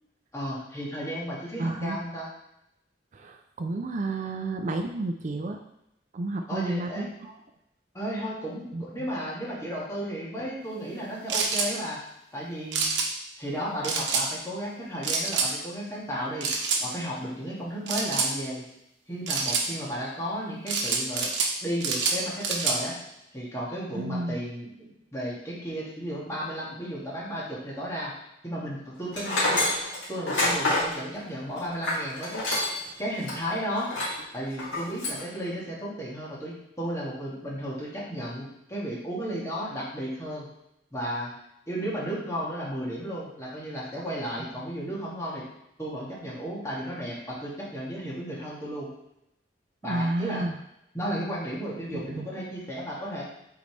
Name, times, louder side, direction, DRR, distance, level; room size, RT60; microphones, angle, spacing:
voice 1, 0.3-2.3 6.5-7.1 7.9-12.0 12.3-12.9 13.4-16.5 16.8-18.6 19.1-21.3 21.6-22.9 23.3-28.1 28.4-29.6 30.1-32.5 33.0-33.9 34.3-40.5 40.9-41.3 41.7-45.4 45.8-48.9 49.8-50.4 50.9-53.2, equal, 15° left, -6 dB, 1.9 m, -34 dB
voice 2, 1.6-2.0 3.1-5.6 6.1-7.4 8.7-8.8 24.0-24.4 49.8-50.6 51.9-52.3, right 2 dB, 40° right, 5 dB, 0.4 m, -31 dB
sound 1, 11.3-11.7 12.7-13.1 13.8-14.3 15.0-15.5 16.4-16.8 17.9-18.3 19.3-19.7 20.7-21.5 21.8-22.8, right 4 dB, 80° right, 1.1 m, -26 dB
Tools, 29.1-32.9 33.2-33.4 33.8-34.2 34.6-35.2, left 2 dB, 90° left, 2.4 m, -27 dB
8.4 x 4.0 x 3.2 m, 0.83 s
head